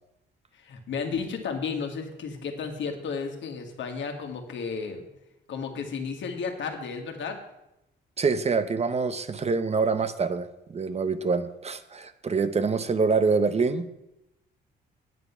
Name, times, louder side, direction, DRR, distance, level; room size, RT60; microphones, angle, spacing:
voice 1, 0.5-5.0 5.5-7.4, left 5 dB, 70° left, 4 dB, 1.8 m, -33 dB
voice 2, 8.2-13.9, right 4 dB, 30° right, 12 dB, 0.7 m, -25 dB
9.3 x 7.8 x 5.7 m, 0.89 s
cardioid pair, 90°, 20 cm